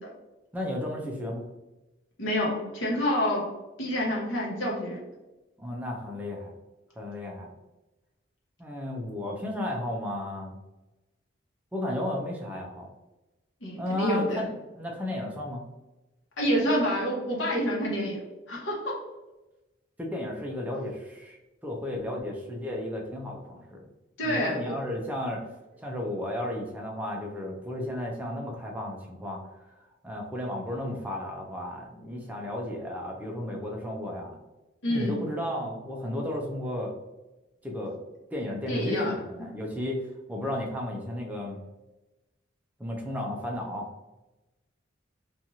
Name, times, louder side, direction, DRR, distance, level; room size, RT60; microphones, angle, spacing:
voice 1, 0.5-1.4 5.6-6.5 7.0-7.5 8.6-10.6 11.7-12.9 13.8-14.5 14.7-15.6 20.0-23.9 24.2-25.5 25.8-29.4 30.0-34.4 34.9-36.9 37.6-38.0 38.3-41.6 42.8-43.9, left 1 dB, 10° right, -1 dB, 0.4 m, -33 dB
voice 2, 2.2-3.4 3.8-5.0 13.6-14.4 16.4-18.2 18.5-18.9 24.2-24.8 34.8-35.2 38.7-39.1, equal, 75° left, -3 dB, 0.9 m, -27 dB
2.9 x 2.4 x 2.6 m, 1.0 s
head